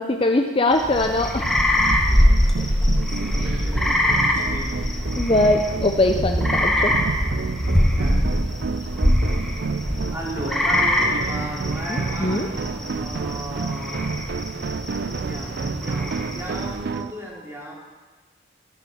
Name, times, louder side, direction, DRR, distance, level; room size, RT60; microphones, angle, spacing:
voice 1, 0.0-1.5 5.2-7.0 11.9-12.5, left 2 dB, 30° left, 4 dB, 0.7 m, -21 dB
sound 1, 0.7-16.9, left 1 dB, ahead, 1.6 m, -23 dB
sound 2, 1.4-17.1, right 4 dB, 55° right, 0.4 m, -30 dB
voice 2, 3.0-4.8 7.9-8.2 10.1-14.1 15.0-17.7, equal, 15° right, -3 dB, 3.1 m, -36 dB
15.0 x 11.5 x 6.4 m, 1.3 s
head